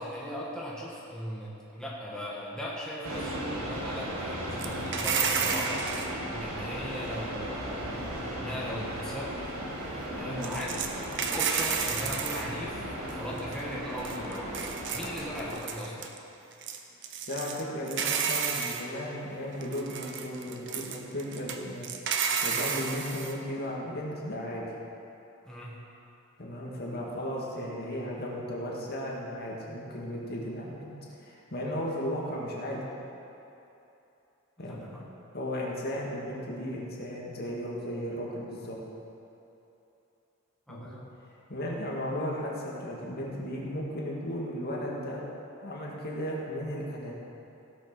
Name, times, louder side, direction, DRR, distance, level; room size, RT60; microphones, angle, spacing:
voice 1, 0.0-5.8 6.3-9.5 10.1-16.1 25.4-25.9 34.7-35.0 40.7-41.0, equal, 5° left, -6 dB, 1.5 m, -39 dB
sound 1, 3.0-15.6, equal, 80° right, 2.1 m, -36 dB
sound 2, 4.6-6.1 10.4-12.5 13.1-13.2 13.4-13.7 14.0-16.2 16.5-17.6 17.9-18.8 19.6-23.3, right 6 dB, 60° right, 0.9 m, -31 dB
voice 2, 10.2-10.6 17.3-21.9 22.4-24.6 26.4-30.9 31.2-32.8 34.6-34.9 35.3-38.8 40.7-40.9 41.5-45.2 45.6-47.1, equal, 50° left, -3 dB, 2.1 m, -35 dB
16.5 x 6.5 x 6.2 m, 2.9 s
head